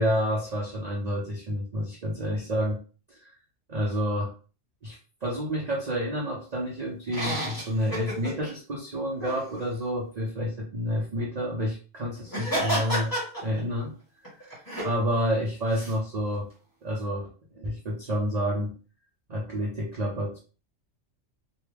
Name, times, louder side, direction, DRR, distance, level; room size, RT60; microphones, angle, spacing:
voice 1, 0.0-2.8 3.1-3.2 3.7-4.3 4.8-13.1 13.4-14.0 14.4-16.5 16.8-17.3 17.6-18.7 19.3-20.4, equal, 40° right, -2 dB, 0.6 m, -29 dB
sound 1, 7.1-8.5 9.2-9.4 12.3-13.8 14.2-14.9 15.7-15.9, equal, 15° left, 1.4 m, -31 dB
3.2 x 2.2 x 3.3 m, 0.37 s
omnidirectional pair, 1.3 m